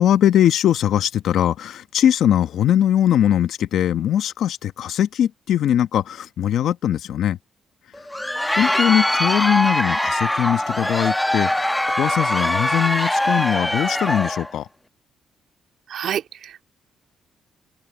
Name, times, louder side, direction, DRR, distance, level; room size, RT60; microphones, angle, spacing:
voice 1, 0.0-7.4 8.6-14.7, left 10 dB, 75° left, 1.1 m, -20 dB
Crowd, 7.9-14.5, left 1 dB, 5° left, 1.1 m, -22 dB
voice 2, 15.9-16.6, right 9 dB, 70° right, 2.2 m, -28 dB
cardioid pair, 90°, 0 cm